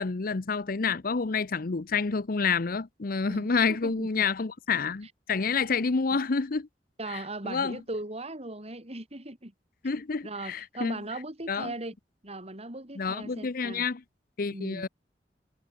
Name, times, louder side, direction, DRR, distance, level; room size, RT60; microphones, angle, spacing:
voice 1, 0.0-6.7 7.1-7.8 9.8-11.0 11.5-11.7 13.0-14.0 14.4-14.9, left 5 dB, 55° left, 0.7 m, -29 dB
voice 2, 3.2-4.2 7.0-9.5 10.2-12.0 12.2-13.9 14.5-14.9, right 2 dB, 35° right, 5.2 m, -38 dB
head